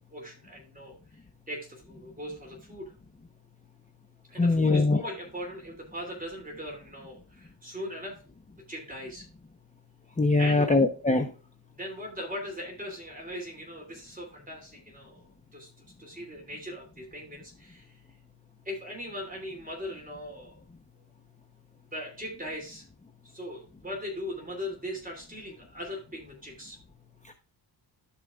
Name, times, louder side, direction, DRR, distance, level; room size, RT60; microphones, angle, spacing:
voice 1, 0.1-1.2 1.5-2.9 4.3-8.2 8.7-9.3 10.4-10.7 11.7-18.0 18.6-20.6 21.9-22.9 23.2-26.8, equal, 20° right, 0 dB, 2.9 m, -39 dB
voice 2, 4.4-5.0 10.2-11.3 27.3-27.4, left 3 dB, 15° left, 4 dB, 0.9 m, -22 dB
14.5 x 5.0 x 2.4 m, 0.36 s
cardioid pair, 80°, 46 cm